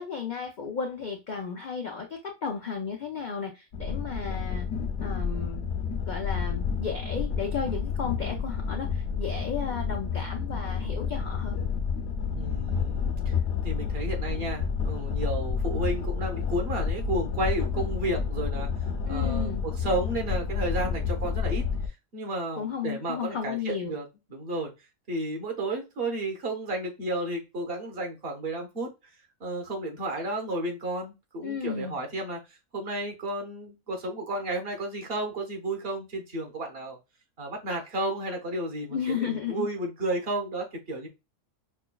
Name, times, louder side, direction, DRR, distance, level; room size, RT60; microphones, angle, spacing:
voice 1, 0.0-4.7 5.0-5.6 6.1-11.6 19.1-19.6 22.6-24.0 31.4-31.9 38.9-39.7, left 6 dB, 85° left, 3 dB, 0.4 m, -34 dB
sound 1, 3.7-21.9, left 6 dB, 65° left, 0.8 m, -30 dB
voice 2, 12.3-13.4 13.6-18.7 19.1-21.6 22.1-24.0 24.3-24.7 25.1-28.9 29.4-32.4 32.7-37.0 37.4-41.1, right 1 dB, 45° right, 3 dB, 1.1 m, -32 dB
5.7 x 2.2 x 2.2 m, 0.25 s
omnidirectional pair, 1.5 m